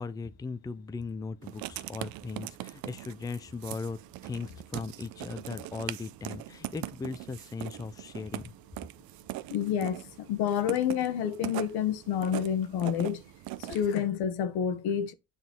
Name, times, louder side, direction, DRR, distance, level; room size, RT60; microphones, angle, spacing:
voice 1, 0.0-8.5, left 4 dB, 10° left, 0.5 m, -38 dB
Writing, 1.4-13.9, right 16 dB, 65° right, 0.7 m, -41 dB
voice 2, 9.5-13.2 13.6-15.1, left 9 dB, 80° left, 1.3 m, -29 dB
9.1 x 4.2 x 3.8 m
cardioid pair, 130°, 38 cm